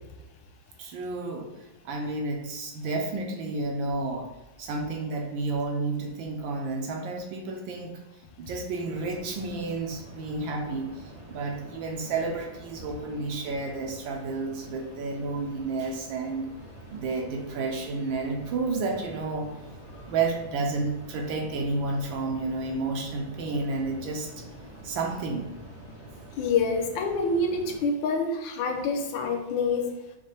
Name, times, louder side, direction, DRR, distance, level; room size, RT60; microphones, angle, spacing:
voice 1, 0.8-4.3 4.6-8.0 8.4-16.5 16.9-19.5 20.1-24.3 24.8-25.5, right 3 dB, 75° right, 2 dB, 1.3 m, -31 dB
sound 1, 8.8-27.8, right 1 dB, 55° right, 0.8 m, -46 dB
voice 2, 26.4-29.9, left 3 dB, 75° left, 3 dB, 1.2 m, -26 dB
5.4 x 2.1 x 3.2 m, 1.0 s
omnidirectional pair, 2.3 m